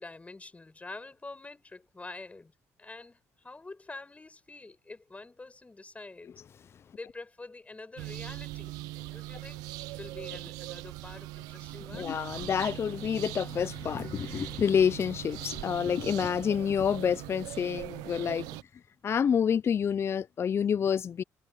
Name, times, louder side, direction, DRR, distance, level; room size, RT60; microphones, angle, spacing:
voice 1, 0.0-6.3 6.9-9.7 10.0-12.2, left 3 dB, 20° left, 7.4 m, -46 dB
sound 1, 8.0-18.6, right 19 dB, 90° right, 0.5 m, -41 dB
voice 2, 11.9-18.5 19.0-21.2, left 7 dB, 45° left, 0.4 m, -28 dB
supercardioid pair, 75°, 6 cm